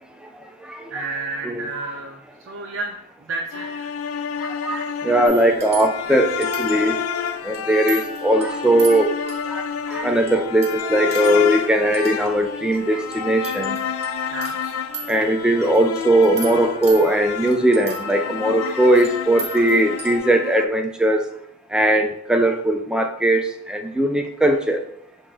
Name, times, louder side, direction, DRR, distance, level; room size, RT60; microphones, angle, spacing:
voice 1, 0.9-3.9 14.3-14.6, right 3 dB, 65° right, 0 dB, 0.5 m, -31 dB
sound 1, 3.5-20.7, left 8 dB, 90° left, 0.3 m, -30 dB
voice 2, 4.4-7.0 7.4-9.1 9.5-13.8 15.1-21.3 21.7-24.8, right 1 dB, 5° right, 4 dB, 0.3 m, -19 dB
sound 2, 5.2-20.2, right 1 dB, 30° right, 1.0 m, -36 dB
5.7 x 2.5 x 3.7 m, 0.71 s
head